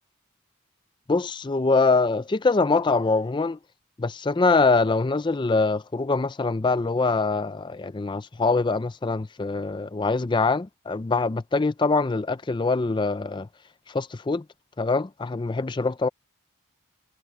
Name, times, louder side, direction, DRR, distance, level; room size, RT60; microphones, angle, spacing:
voice 1, 1.1-3.6 4.0-13.5 13.9-14.4 14.8-16.1, left 3 dB, 20° left, 0.4 m, -24 dB
head